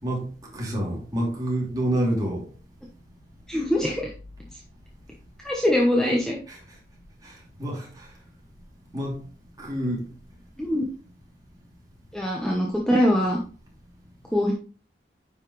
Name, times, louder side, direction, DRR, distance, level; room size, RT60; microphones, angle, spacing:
voice 1, 0.0-2.4 6.5-6.6 7.2-8.1 8.9-9.2 9.6-10.0, right 1 dB, 20° right, 2.9 m, -28 dB
voice 2, 3.5-4.1 5.4-6.4 10.6-10.8 12.1-13.4 14.3-14.5, left 1 dB, 5° left, 1.0 m, -22 dB
9.6 x 5.7 x 3.2 m
head